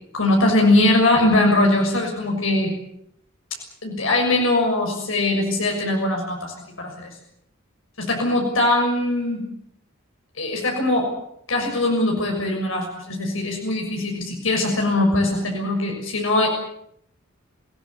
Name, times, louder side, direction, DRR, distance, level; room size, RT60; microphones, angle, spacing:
voice 1, 0.1-2.7 3.8-7.1 8.0-9.4 10.4-11.1 11.5-16.5, left 2 dB, 80° left, 1 dB, 6.7 m, -21 dB
28.5 x 17.5 x 8.2 m, 0.73 s
head